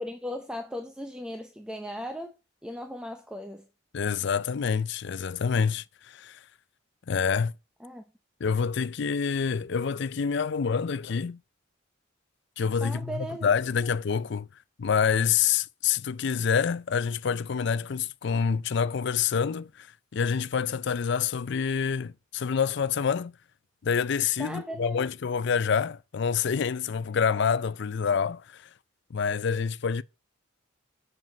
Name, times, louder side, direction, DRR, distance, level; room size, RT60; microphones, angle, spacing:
voice 1, 0.0-2.3 2.6-3.7 7.8-8.0 12.8-13.5 13.8-13.9 24.4-25.1, equal, 5° right, 0.8 m, -37 dB
voice 2, 3.9-6.4 7.1-7.5 8.4-11.4 12.6-14.5 14.8-19.9 20.1-23.3 23.8-28.7 29.1-30.0, left 6 dB, 55° left, 0.4 m, -27 dB
7.7 x 7.4 x 5.3 m
head